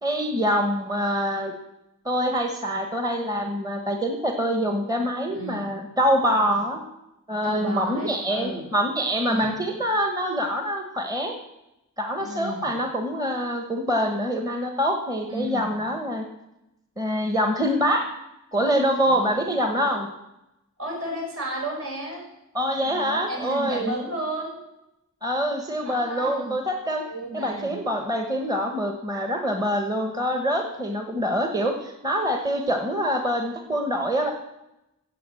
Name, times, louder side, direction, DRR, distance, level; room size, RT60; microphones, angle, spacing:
voice 1, 0.0-1.5 2.0-6.8 7.3-11.3 12.0-16.3 17.0-18.1 18.5-20.1 22.5-23.9 25.2-27.0 27.3-34.3, equal, 15° right, 4 dB, 1.2 m, -25 dB
voice 2, 5.3-5.7 7.4-8.7 9.2-9.7 12.2-12.7 15.3-15.8 19.1-19.4 19.7-20.0 20.8-22.2 22.8-24.6 25.8-26.5 27.1-27.8 31.1-31.2, right 1 dB, 70° right, -1 dB, 5.6 m, -33 dB
15.5 x 7.8 x 7.5 m, 0.91 s
head